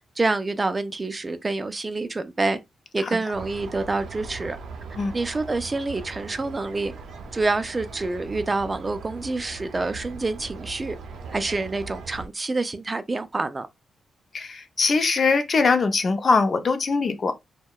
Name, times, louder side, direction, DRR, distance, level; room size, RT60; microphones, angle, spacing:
voice 1, 0.2-2.6 2.9-4.6 5.1-6.9 7.3-10.9 11.3-13.7, right 3 dB, 25° right, 0.3 m, -27 dB
sound 1, 3.3-12.3, right 4 dB, 80° right, 0.5 m, -40 dB
voice 2, 14.3-17.3, left 4 dB, 45° left, 0.5 m, -22 dB
2.7 x 2.1 x 2.3 m
cardioid pair, 105°, 0 cm